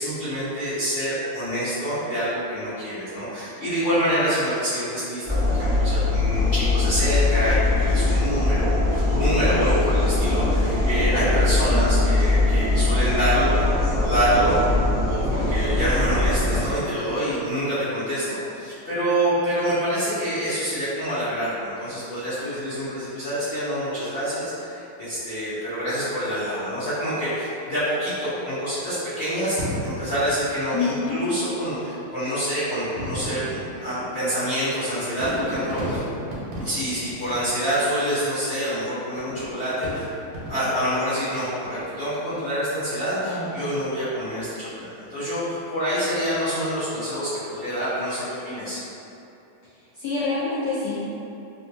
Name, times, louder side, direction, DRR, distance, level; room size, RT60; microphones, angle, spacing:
voice 1, 0.0-14.5 15.1-36.0 36.6-40.1 40.5-48.8, equal, 55° left, -16 dB, 0.6 m, -26 dB
sound 1, 5.3-16.6, left 2 dB, 30° right, 0.6 m, -21 dB
Fireworks, 29.6-31.2 32.0-32.1 32.8-38.1 39.2-40.9 41.5-42.0, equal, 85° right, 1.5 m, -34 dB
voice 2, 30.7-31.2 43.2-43.5 49.9-51.0, left 4 dB, 90° left, -10 dB, 0.8 m, -26 dB
3.4 x 2.1 x 2.6 m, 2.8 s
omnidirectional pair, 2.3 m